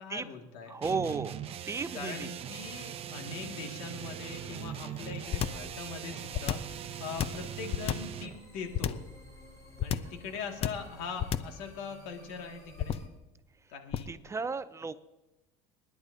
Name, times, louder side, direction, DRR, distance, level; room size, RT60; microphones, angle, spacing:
voice 1, 0.0-0.7 1.9-6.6 7.0-9.0 9.8-13.0 13.7-14.2, left 5 dB, 80° left, 3 dB, 2.1 m, -41 dB
voice 2, 0.7-1.4 1.7-2.3 14.1-15.1, right 4 dB, 20° right, 14 dB, 0.4 m, -34 dB
sound 1, 0.8-8.4, right 10 dB, 35° right, 0.8 m, -41 dB
sound 2, 4.0-13.1, left 1 dB, 20° left, 4.2 m, -55 dB
sound 3, 5.3-5.7 6.3-6.8 7.2-8.2 8.7-9.1 9.8-10.2 10.6-10.9 11.2-11.6 12.8-13.2 13.9-14.2, left 10 dB, 40° left, 0.6 m, -31 dB
28.0 x 10.5 x 2.7 m, 1.0 s
cardioid pair, 125°, 16 cm